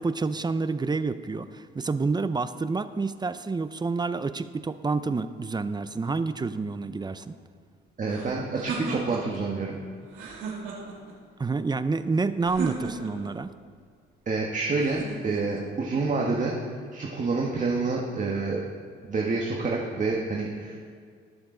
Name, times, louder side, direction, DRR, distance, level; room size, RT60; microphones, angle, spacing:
voice 1, 0.0-7.3 11.4-13.5, right 4 dB, 20° right, 12 dB, 0.5 m, -28 dB
voice 2, 8.0-9.8 14.2-16.5 16.9-18.6 19.1-20.9, right 3 dB, 40° right, -1 dB, 1.5 m, -28 dB
sound 1, 8.1-9.4 10.1-11.1 12.4-13.3 14.8-15.7, right 4 dB, 90° right, 2.6 m, -35 dB
20.0 x 7.0 x 3.9 m, 2.1 s
cardioid pair, 90°, 20 cm